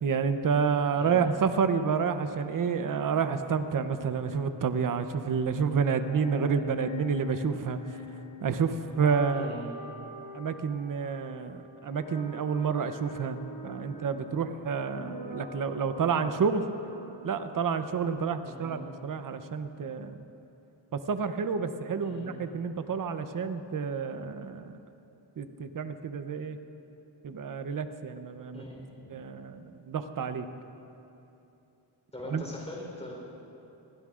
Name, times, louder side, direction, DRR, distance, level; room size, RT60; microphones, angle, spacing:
voice 1, 0.0-8.0 8.4-9.5 10.3-16.6 17.2-20.2 20.9-24.7 25.4-26.6 27.2-28.6 29.1-30.5 32.3-32.4, right 6 dB, 45° right, 9 dB, 0.7 m, -29 dB
sound 1, 5.8-18.8, left 2 dB, 40° left, 1.6 m, -44 dB
voice 2, 9.3-9.7 13.9-14.1 18.4-18.8 22.0-22.3 28.5-28.8 29.1-29.2 32.1-33.1, left 1 dB, 15° left, -3 dB, 3.9 m, -42 dB
23.0 x 16.0 x 2.5 m, 2.9 s
cardioid pair, 80°, 45 cm